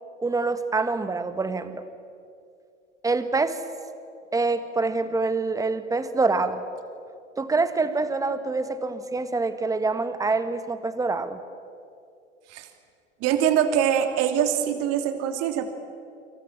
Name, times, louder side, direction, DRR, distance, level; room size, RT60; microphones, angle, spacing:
voice 1, 0.2-1.8 3.0-3.6 4.3-6.6 7.4-11.4, right 3 dB, 10° right, 11 dB, 1.7 m, -25 dB
voice 2, 13.2-15.7, right 9 dB, 40° right, 7 dB, 2.9 m, -23 dB
29.5 x 26.0 x 7.4 m, 2.5 s
figure-of-eight pair, 95°, 36 cm